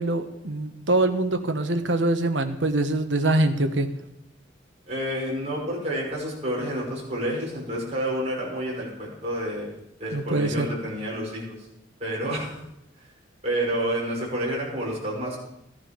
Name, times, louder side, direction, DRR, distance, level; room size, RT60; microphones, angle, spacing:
voice 1, 0.0-3.9 10.1-10.7, right 2 dB, 75° right, 7 dB, 1.3 m, -24 dB
voice 2, 4.9-9.7 10.0-11.7 12.0-12.6 13.0-13.1 13.4-15.4, right 1 dB, 35° right, -4 dB, 6.0 m, -29 dB
15.5 x 11.0 x 5.3 m, 0.84 s
head